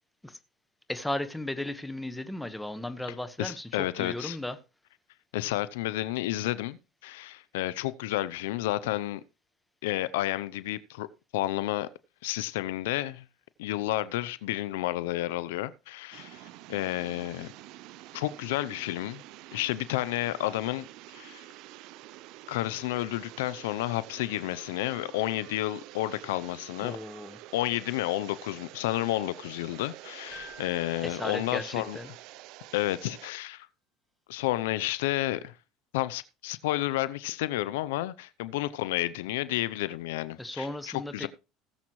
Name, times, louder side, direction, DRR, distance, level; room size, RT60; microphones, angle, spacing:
voice 1, 0.9-4.6 26.8-27.4 31.0-32.1 40.4-41.3, left 1 dB, 5° left, 1.3 m, -35 dB
voice 2, 3.4-4.4 5.3-9.2 9.8-11.1 11.3-11.9 12.2-13.2 13.6-17.5 18.1-19.2 19.5-20.9 21.1-21.4 22.5-27.0 27.5-32.0 32.7-33.7 34.3-35.5 35.9-40.7 41.1-41.3, left 15 dB, 85° left, 0.6 m, -31 dB
sound 1, 16.1-33.3, right 16 dB, 65° right, 0.5 m, -48 dB
Keyboard (musical), 30.3-32.1, right 1 dB, 15° right, 1.4 m, -51 dB
19.0 x 7.2 x 3.1 m
supercardioid pair, 105°, 0 cm